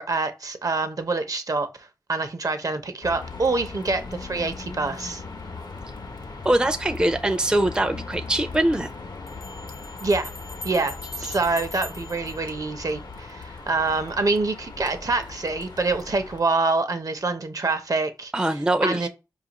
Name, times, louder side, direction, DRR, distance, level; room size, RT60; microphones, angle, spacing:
voice 1, 0.0-5.2 10.0-10.3 10.6-18.3 18.8-19.1, right 3 dB, 55° right, 0.6 m, -26 dB
sound 1, 3.0-16.4, left 4 dB, 75° left, 0.7 m, -38 dB
voice 2, 6.4-8.9 18.3-19.1, right 1 dB, 10° right, 0.4 m, -22 dB
Bell, 9.3-13.2, left 1 dB, 50° left, 0.4 m, -42 dB
4.8 x 2.4 x 2.9 m
cardioid pair, 45°, 7 cm